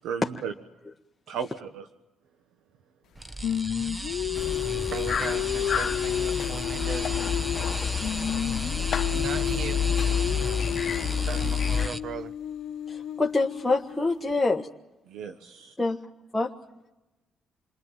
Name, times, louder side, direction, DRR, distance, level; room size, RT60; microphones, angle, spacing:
voice 1, 0.0-0.5 1.3-1.9 15.1-15.7, right 7 dB, 90° right, 1.3 m, -35 dB
sound 1, 3.1-12.0, right 1 dB, 10° right, 1.1 m, -35 dB
Singing, 3.4-7.7 8.0-14.0, left 10 dB, 70° left, 1.0 m, -32 dB
sound 2, 4.3-11.9, left 7 dB, 50° left, 1.2 m, -29 dB
voice 2, 4.9-7.2 9.1-9.8 11.2-12.3, right 6 dB, 60° right, 1.2 m, -37 dB
voice 3, 12.9-14.7 15.8-16.0 16.3-16.5, left 3 dB, 10° left, 1.5 m, -25 dB
28.0 x 20.5 x 8.9 m
cardioid pair, 90°, 0 cm